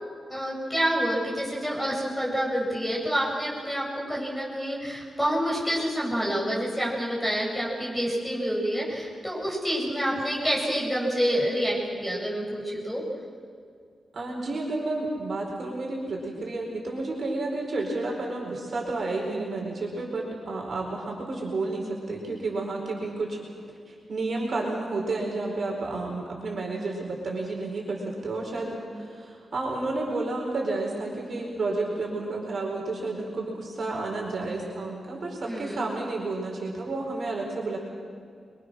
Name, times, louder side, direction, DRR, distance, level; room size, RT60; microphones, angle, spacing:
voice 1, 0.3-13.0 35.5-35.9, equal, 5° left, -4 dB, 7.6 m, -28 dB
voice 2, 14.1-23.4 23.9-37.8, right 2 dB, 45° right, -1 dB, 4.7 m, -31 dB
28.0 x 23.5 x 6.4 m, 2.2 s
wide cardioid pair, 150°, 0 cm